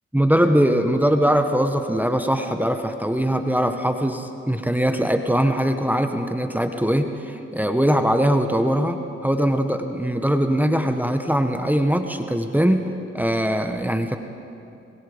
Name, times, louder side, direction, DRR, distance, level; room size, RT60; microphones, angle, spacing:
voice 1, 0.1-14.2, equal, 5° right, 6 dB, 1.5 m, -21 dB
27.0 x 21.5 x 5.3 m, 2.6 s
supercardioid pair, 45°, 30 cm